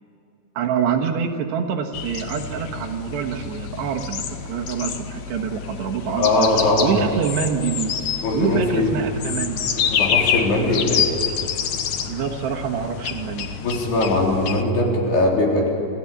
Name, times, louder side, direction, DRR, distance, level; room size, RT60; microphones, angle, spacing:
voice 1, 0.6-6.5 6.8-8.0 8.3-9.7 12.0-13.5, right 7 dB, 75° right, 2 dB, 3.5 m, -26 dB
sound 1, 1.9-14.6, left 8 dB, 80° left, 1.6 m, -27 dB
voice 2, 6.1-7.0 8.2-8.9 9.8-11.1 13.6-15.7, left 2 dB, 65° left, -2 dB, 6.1 m, -20 dB
28.0 x 15.5 x 8.6 m, 2.9 s
omnidirectional pair, 5.1 m